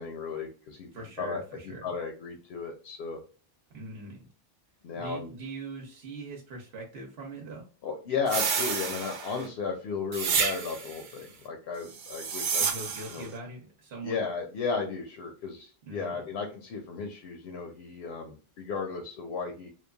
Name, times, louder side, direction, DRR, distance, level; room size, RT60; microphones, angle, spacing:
voice 1, 0.0-0.9 1.2-3.2 4.8-5.3 7.8-12.6 13.1-13.3 14.0-19.7, left 5 dB, 80° left, 3 dB, 0.8 m, -34 dB
voice 2, 0.9-1.9 3.7-4.3 4.9-7.7 12.6-14.2 15.9-16.2, right 3 dB, 80° right, 0 dB, 1.0 m, -41 dB
sound 1, 8.3-9.5 10.1-11.0 12.0-13.2, right 6 dB, 60° right, 0.7 m, -30 dB
3.0 x 2.3 x 2.2 m, 0.38 s
omnidirectional pair, 1.0 m